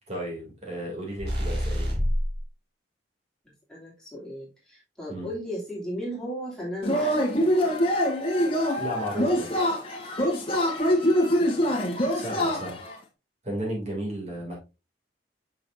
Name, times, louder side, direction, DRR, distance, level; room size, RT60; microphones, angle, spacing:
voice 1, 0.0-2.0 5.1-5.3 8.8-9.5 12.1-12.8 13.4-14.5, right 1 dB, 40° right, -2 dB, 2.8 m, -34 dB
sound 1, 1.2-2.4, equal, 65° right, 2.4 m, -26 dB
voice 2, 3.7-7.2 11.3-11.8 12.4-12.7, equal, 5° left, -6 dB, 2.9 m, -36 dB
Yell / Cheering, 6.8-12.9, equal, 30° left, 1.6 m, -24 dB
6.7 x 6.2 x 2.7 m, 0.27 s
head